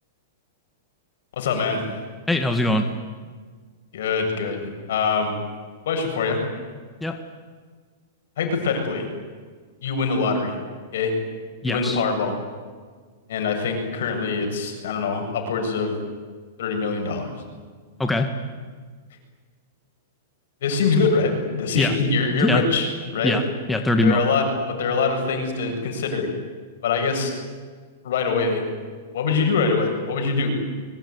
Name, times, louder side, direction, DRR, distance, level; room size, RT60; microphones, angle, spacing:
voice 1, 1.4-1.8 3.9-5.3 5.9-6.4 8.4-9.1 9.8-10.6 10.9-11.2 11.6-12.4 13.3-16.0 16.6-17.3 20.6-23.3 24.0-26.3 26.8-27.3 28.0-28.6 29.1-30.5, left 4 dB, 70° left, 4 dB, 7.4 m, -23 dB
voice 2, 2.3-2.9 7.0-7.2 11.6-12.0 18.0-18.3 21.8-21.9 22.4-22.6 23.2-23.4 23.7-24.2, left 2 dB, 5° left, 5 dB, 1.9 m, -21 dB
24.5 x 22.0 x 9.8 m, 1.5 s
hypercardioid pair, 130°, 0 cm